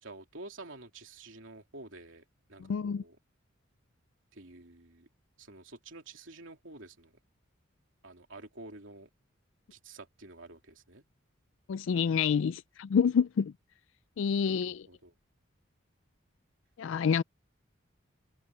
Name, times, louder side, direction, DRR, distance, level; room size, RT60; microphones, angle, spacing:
voice 1, 0.0-3.2 4.3-5.1 5.4-7.1 8.0-9.1 9.7-11.0 14.3-15.1, right 2 dB, 70° right, 3.1 m, -49 dB
voice 2, 2.6-3.0 11.7-13.5 14.2-14.9 16.8-17.2, left 6 dB, 70° left, 0.3 m, -28 dB
head